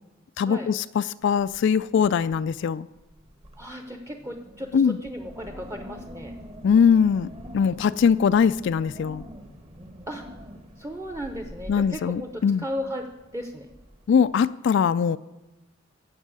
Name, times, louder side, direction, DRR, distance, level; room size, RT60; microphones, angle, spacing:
voice 1, 0.4-2.9 4.7-5.0 6.6-9.2 11.7-12.6 14.1-15.2, left 6 dB, 65° left, 15 dB, 0.3 m, -21 dB
Wind, 1.5-1.7 2.0-2.5 2.9-14.4, equal, 30° right, 1.4 m, -45 dB
voice 2, 3.6-6.4 8.1-8.3 10.1-10.4 10.8-13.7, equal, 15° right, 4 dB, 0.8 m, -35 dB
15.5 x 5.5 x 8.7 m, 1.0 s
head